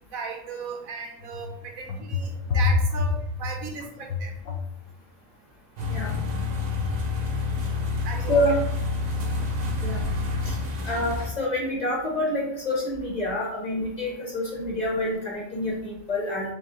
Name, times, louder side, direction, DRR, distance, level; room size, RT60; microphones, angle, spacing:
voice 1, 0.1-4.3 8.0-8.5, right 4 dB, 85° right, 3 dB, 1.2 m, -36 dB
sound 1, 1.2-4.8 6.1-6.4 6.8-7.2, left 4 dB, 70° left, 1.0 m, -27 dB
sound 2, 5.8-11.3, left 3 dB, 55° right, 0.4 m, -28 dB
voice 2, 10.8-16.5, left 1 dB, 35° left, -3 dB, 0.8 m, -27 dB
3.7 x 3.3 x 2.8 m, 0.74 s
omnidirectional pair, 1.4 m